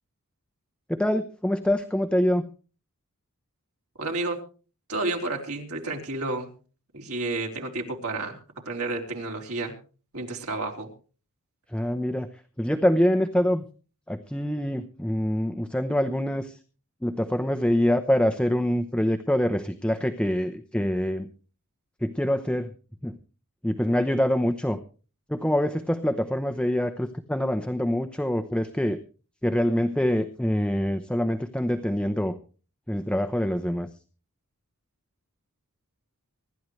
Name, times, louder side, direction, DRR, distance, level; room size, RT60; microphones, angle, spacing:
voice 1, 0.9-2.5 11.7-12.3 12.6-13.7 14.1-16.6 17.0-21.3 22.0-22.7 23.0-23.1 23.6-24.8 25.3-29.0 29.4-32.4 32.9-33.9, equal, 5° left, 8 dB, 0.8 m, -25 dB
voice 2, 4.0-4.4 4.9-6.5 6.9-8.4 8.7-9.7 10.1-10.9, right 2 dB, 75° right, 1 dB, 4.0 m, -31 dB
25.0 x 12.0 x 3.2 m, 0.37 s
head